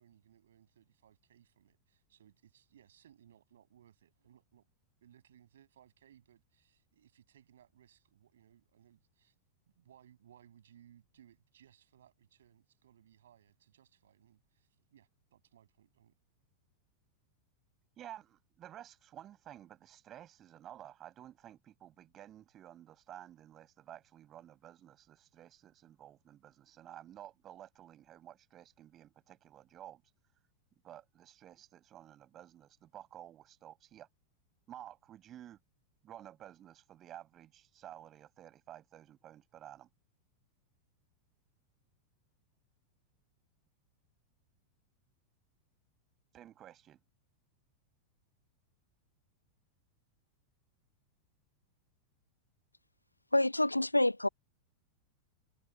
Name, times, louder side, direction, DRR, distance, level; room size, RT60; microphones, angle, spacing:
voice 1, 0.0-4.7 5.0-9.4 9.8-16.1, right 10 dB, 65° right, 6.9 m, -64 dB
voice 2, 18.0-30.0 30.8-34.1 34.7-35.6 36.0-39.9 46.3-47.0, right 11 dB, 30° right, 6.4 m, -53 dB
voice 3, 53.3-54.3, left 1 dB, 85° left, 0.3 m, -27 dB
figure-of-eight pair, 90°, 0 cm